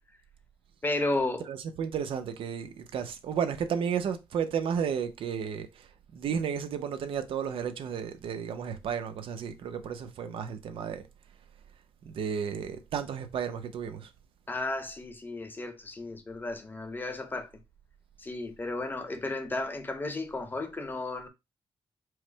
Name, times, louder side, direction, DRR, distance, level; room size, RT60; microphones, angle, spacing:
voice 1, 0.8-1.4 14.5-17.5 18.2-21.3, left 2 dB, 20° left, 0.9 m, -33 dB
voice 2, 1.5-11.1 12.0-14.1, right 7 dB, 75° right, 0.7 m, -33 dB
4.7 x 2.1 x 4.5 m
cardioid pair, 110°, 9 cm